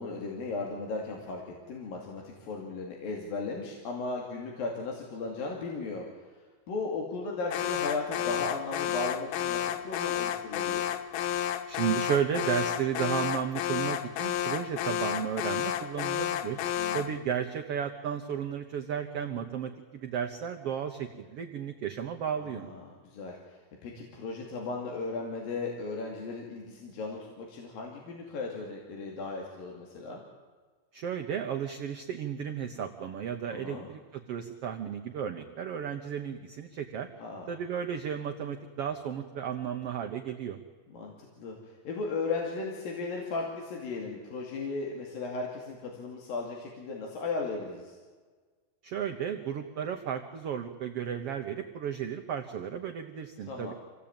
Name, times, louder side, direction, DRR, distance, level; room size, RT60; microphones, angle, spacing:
voice 1, 0.0-10.9 16.8-17.1 22.4-30.2 33.5-33.9 37.2-37.5 40.9-48.0 53.5-53.7, left 3 dB, 70° left, 0 dB, 4.1 m, -36 dB
Alarm, 7.5-17.2, left 10 dB, 85° left, 2.8 m, -31 dB
voice 2, 11.7-16.6 16.9-22.7 30.9-37.1 37.5-40.6 48.8-53.7, right 8 dB, 75° right, 5 dB, 1.4 m, -33 dB
26.5 x 17.0 x 8.8 m, 1.4 s
omnidirectional pair, 4.3 m